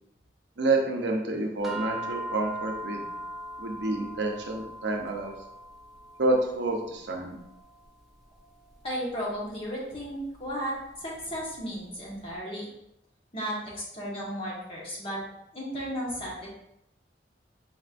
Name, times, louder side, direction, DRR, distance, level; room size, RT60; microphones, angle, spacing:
voice 1, 0.6-3.0 3.6-5.3 6.2-7.4, right 2 dB, 80° right, 2 dB, 0.7 m, -28 dB
sound 1, 1.6-12.1, right 1 dB, ahead, 0.6 m, -41 dB
voice 2, 8.8-10.7 11.0-12.7 13.3-15.2 15.5-16.5, equal, 30° left, -5 dB, 1.4 m, -34 dB
4.4 x 4.3 x 2.5 m, 0.81 s
head